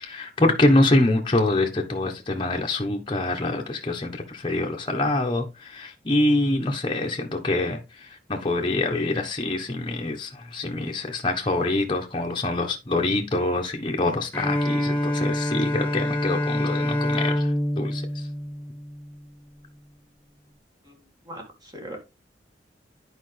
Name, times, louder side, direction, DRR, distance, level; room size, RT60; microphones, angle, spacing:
voice 1, 0.0-18.0, left 2 dB, 25° left, 1.1 m, -25 dB
Bowed string instrument, 14.3-19.2, left 1 dB, 10° left, 1.5 m, -26 dB
voice 2, 20.8-22.0, right 1 dB, 20° right, 1.9 m, -41 dB
10.0 x 5.0 x 3.3 m
head